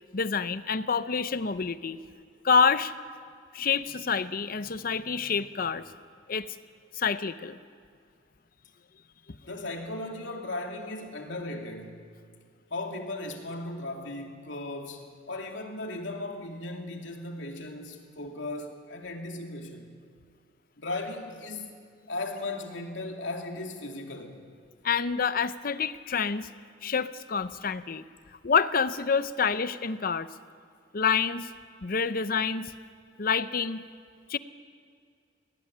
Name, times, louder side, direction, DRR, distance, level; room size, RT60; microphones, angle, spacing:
voice 1, 0.1-2.0 2.4-2.9 3.5-5.8 6.3-6.6 6.9-7.6 24.8-26.5 26.8-28.0 28.4-30.3 30.9-31.5 31.8-32.7 33.2-33.9 34.3-34.4, left 5 dB, 50° left, 13 dB, 0.7 m, -27 dB
voice 2, 9.4-12.0 12.7-19.9 20.8-21.7 22.1-24.4, left 2 dB, 90° left, 2 dB, 2.8 m, -37 dB
20.5 x 17.0 x 10.0 m, 2.2 s
head